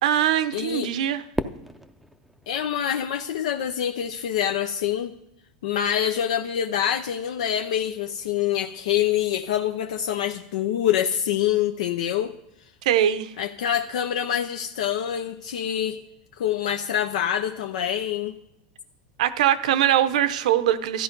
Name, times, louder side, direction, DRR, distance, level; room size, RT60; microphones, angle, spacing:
voice 1, 0.0-1.2 12.8-13.3 19.2-21.0, right 11 dB, 80° right, 13 dB, 0.8 m, -22 dB
voice 2, 0.5-0.9 2.5-5.1 5.6-12.3 13.4-16.0 16.4-18.3, left 10 dB, 85° left, 6 dB, 0.7 m, -26 dB
Fireworks, 1.3-3.7, right 1 dB, ahead, 0.5 m, -35 dB
13.5 x 11.0 x 5.3 m, 0.82 s
supercardioid pair, 140°, 4 cm